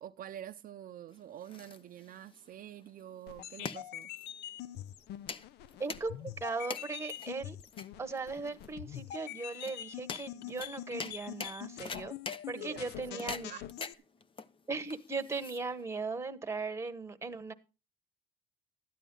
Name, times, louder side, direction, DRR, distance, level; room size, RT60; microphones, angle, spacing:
voice 1, 0.0-4.1 12.5-13.7, right 11 dB, 55° right, 0.6 m, -47 dB
sound 1, 1.1-16.0, left 5 dB, 30° left, 0.8 m, -45 dB
sound 2, 3.3-13.9, left 12 dB, 80° left, 0.6 m, -45 dB
voice 2, 5.8-6.1 6.4-7.6 8.0-12.1 12.5-13.5 14.7-17.5, right 3 dB, 15° right, 1.1 m, -38 dB
12.5 x 10.0 x 3.8 m
cardioid pair, 110°, 17 cm